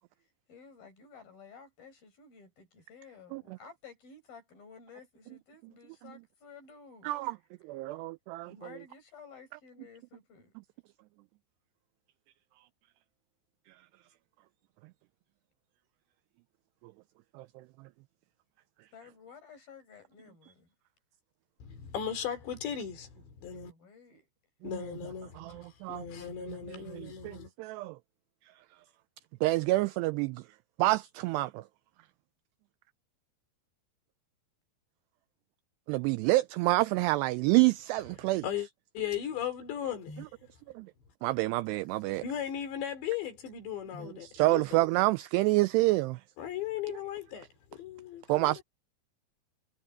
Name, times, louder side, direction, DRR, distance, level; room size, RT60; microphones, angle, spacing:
voice 1, 0.5-7.4 7.8-7.9 8.5-10.5 18.9-20.7 23.4-24.3, left 5 dB, 50° left, 9.1 m, -53 dB
voice 2, 7.0-7.4 7.6-8.6 17.4-17.6 24.6-24.7 25.4-28.0 29.4-30.4 30.8-31.6 35.9-38.4 40.7-40.9 41.2-42.2 44.0-46.2 48.3-48.6, right 20 dB, 90° right, 2.4 m, -28 dB
voice 3, 21.6-23.7 24.6-27.5 38.4-38.7 39.0-40.3 42.2-44.7 46.4-48.6, left 9 dB, 70° left, 5.6 m, -37 dB
omnidirectional pair, 5.3 m